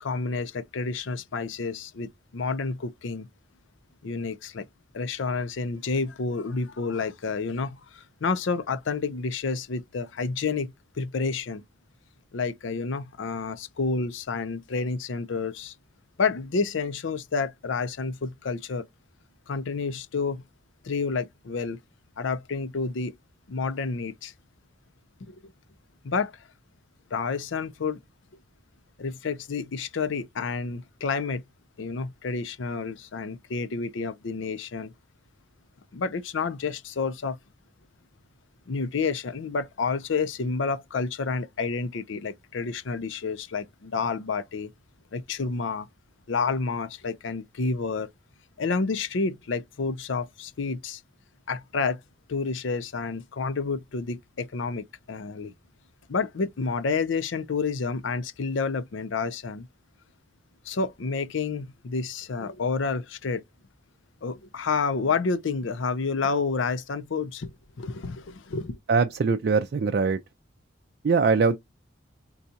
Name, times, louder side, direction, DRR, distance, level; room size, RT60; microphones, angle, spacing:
voice 1, 0.0-3.3 4.0-4.7 4.9-11.6 12.3-15.7 16.2-18.9 19.5-20.4 20.8-21.8 22.2-23.1 23.5-24.3 25.2-25.5 26.0-26.3 27.1-28.0 29.0-31.4 31.8-34.9 35.9-37.4 38.7-44.7 45.1-45.9 46.3-48.1 48.6-51.0 51.5-52.0 52.3-55.5 56.1-59.7 60.7-63.4 64.2-68.8, left 4 dB, 70° left, 0.5 m, -29 dB
voice 2, 68.9-70.2 71.0-71.6, right 4 dB, 50° right, 0.3 m, -22 dB
3.9 x 2.3 x 2.7 m
head